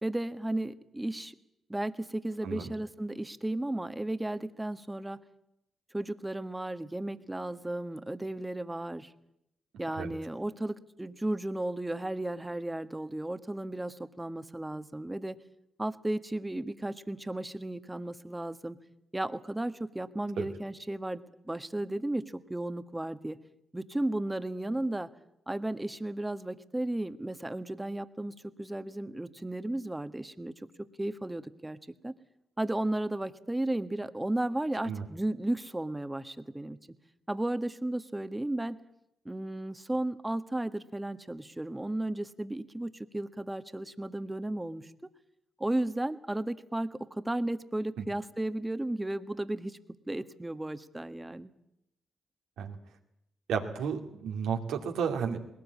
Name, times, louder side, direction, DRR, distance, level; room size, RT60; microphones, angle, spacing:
voice 1, 0.0-1.3 1.7-5.2 5.9-9.1 9.8-15.4 15.8-18.8 19.1-23.4 23.7-25.1 25.5-30.5 30.8-31.8 32.0-32.1 32.6-36.8 37.3-38.8 39.2-44.9 45.6-49.8 50.1-51.5, right 1 dB, 15° right, 10 dB, 1.5 m, -34 dB
voice 2, 53.5-55.4, right 7 dB, 80° right, 3 dB, 2.5 m, -32 dB
20.5 x 18.5 x 8.6 m, 0.83 s
hypercardioid pair, 40°, 0 cm